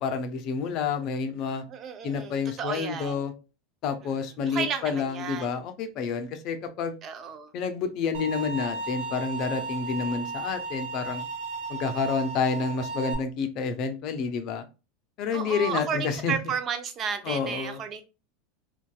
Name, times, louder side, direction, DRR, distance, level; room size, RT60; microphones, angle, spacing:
voice 1, 0.0-1.6 2.0-3.3 3.8-7.0 7.5-11.3 11.7-14.6 15.2-16.3 17.2-17.8, left 5 dB, 55° left, 0.5 m, -29 dB
voice 2, 1.7-3.2 4.5-5.5 7.0-7.5 15.3-18.0, right 6 dB, 40° right, 0.5 m, -32 dB
sound 1, 8.1-13.1, right 3 dB, 75° right, 0.9 m, -35 dB
2.6 x 2.2 x 2.2 m
hypercardioid pair, 95°, 0 cm